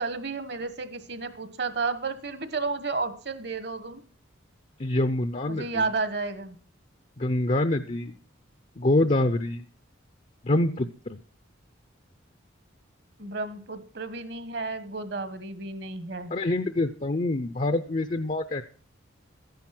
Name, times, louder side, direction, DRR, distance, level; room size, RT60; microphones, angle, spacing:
voice 1, 0.0-4.0 5.5-6.6 13.2-16.3, right 4 dB, 55° right, 11 dB, 1.4 m, -32 dB
voice 2, 4.8-5.9 7.2-8.1 8.8-9.6 10.4-11.2 16.3-18.6, left 2 dB, 35° left, 10 dB, 0.6 m, -26 dB
13.5 x 10.5 x 6.0 m, 0.42 s
head